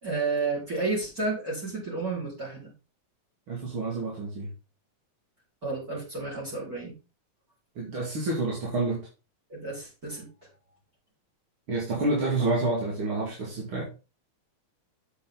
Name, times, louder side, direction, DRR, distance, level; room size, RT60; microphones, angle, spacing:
voice 1, 0.0-2.7 5.6-6.9 9.5-10.3, right 3 dB, 25° right, -3 dB, 5.1 m, -31 dB
voice 2, 3.5-4.5 7.8-9.1 11.7-13.9, right 2 dB, 45° right, -3 dB, 3.1 m, -28 dB
8.1 x 7.8 x 3.9 m, 0.30 s
omnidirectional pair, 3.5 m